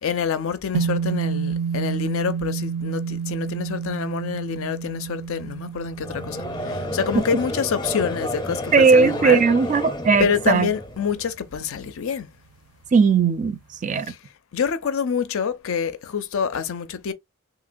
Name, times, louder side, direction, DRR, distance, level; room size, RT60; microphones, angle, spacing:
voice 1, 0.0-9.4 10.2-12.3 14.0-14.2 14.5-17.1, left 6 dB, 65° left, 0.5 m, -27 dB
sound 1, 0.7-9.2, right 6 dB, 90° right, 0.6 m, -29 dB
Conversation / Crowd, 6.0-11.3, left 1 dB, 20° left, 0.6 m, -31 dB
voice 2, 8.7-10.7 12.9-14.1, right 5 dB, 35° right, 0.4 m, -18 dB
2.9 x 2.8 x 2.5 m
head